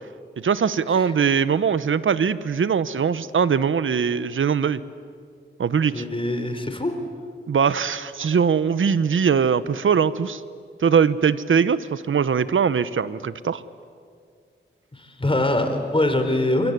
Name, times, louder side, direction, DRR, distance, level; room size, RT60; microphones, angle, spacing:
voice 1, 0.4-4.8 5.6-6.0 7.5-10.4 10.8-13.6, right 6 dB, 75° right, 15 dB, 1.0 m, -21 dB
voice 2, 5.9-6.9 14.9-16.7, left 1 dB, 25° left, 7 dB, 3.9 m, -23 dB
25.5 x 23.5 x 9.5 m, 2.2 s
cardioid pair, 55°, 21 cm